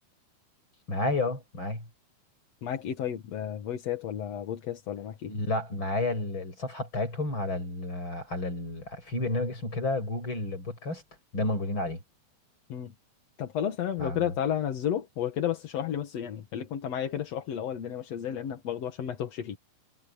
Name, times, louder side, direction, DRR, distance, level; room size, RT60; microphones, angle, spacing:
voice 1, 0.9-1.9 5.3-11.0 11.3-12.0 14.0-14.3, left 2 dB, 30° left, 8.2 m, -31 dB
voice 2, 2.6-5.3 12.7-12.9 13.4-19.6, left 9 dB, 55° left, 2.2 m, -32 dB
omnidirectional pair, 4.3 m